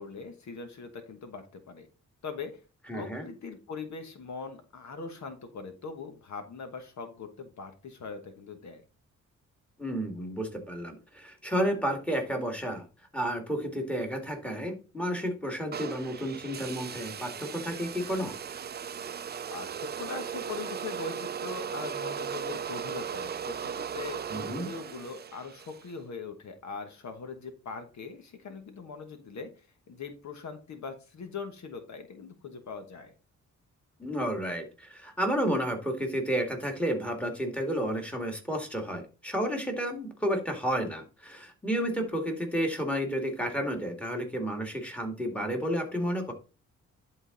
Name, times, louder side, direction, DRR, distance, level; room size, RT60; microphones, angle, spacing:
voice 1, 0.0-1.9 2.2-2.5 2.9-8.8 19.5-33.1, left 4 dB, 65° left, 7 dB, 1.3 m, -41 dB
voice 2, 2.9-3.2 9.8-12.8 13.1-18.3 24.3-24.7 34.0-46.3, equal, 5° left, 4 dB, 2.1 m, -31 dB
sound 1, 15.7-25.9, right 7 dB, 35° right, 0.4 m, -37 dB
11.0 x 3.9 x 3.9 m, 0.33 s
cardioid pair, 90°, 31 cm